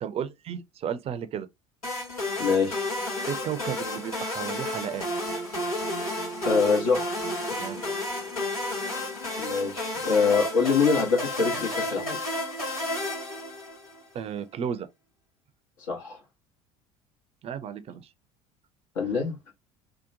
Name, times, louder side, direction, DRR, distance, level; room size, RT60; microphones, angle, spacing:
voice 1, 0.0-1.5 3.3-5.1 7.5-7.8 14.1-14.9 17.4-18.1, right 8 dB, 35° right, 0.5 m, -33 dB
sound 1, 1.8-14.0, left 1 dB, 90° left, 1.0 m, -31 dB
voice 2, 2.4-2.8 6.4-7.1 9.4-12.2 15.9-16.2 18.9-19.4, left 5 dB, 65° left, 1.0 m, -24 dB
2.8 x 2.1 x 2.6 m
figure-of-eight pair, 65°, 18 cm